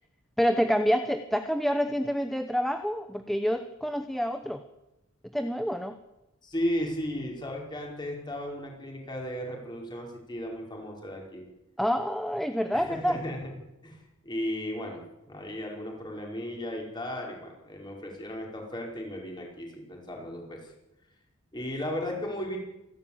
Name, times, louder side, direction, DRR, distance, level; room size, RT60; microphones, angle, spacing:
voice 1, 0.4-4.6 5.3-6.0 11.8-13.2, equal, ahead, 8 dB, 0.9 m, -27 dB
voice 2, 6.4-11.5 12.7-13.4 13.8-14.0 14.2-20.7 21.5-22.6, equal, 20° left, 0 dB, 5.3 m, -35 dB
27.5 x 12.5 x 9.0 m, 0.94 s
head